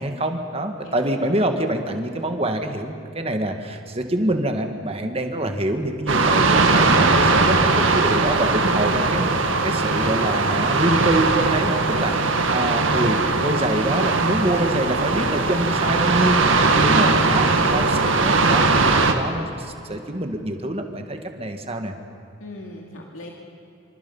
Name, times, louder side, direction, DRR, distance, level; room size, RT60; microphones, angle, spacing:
voice 1, 0.0-21.9, right 1 dB, 30° right, 5 dB, 1.9 m, -25 dB
voice 2, 0.8-1.5 17.4-17.8 22.4-23.3, left 1 dB, 90° left, 0 dB, 2.5 m, -38 dB
sound 1, 6.1-19.1, right 3 dB, 75° right, 1.9 m, -19 dB
26.5 x 26.0 x 5.6 m, 2.8 s
head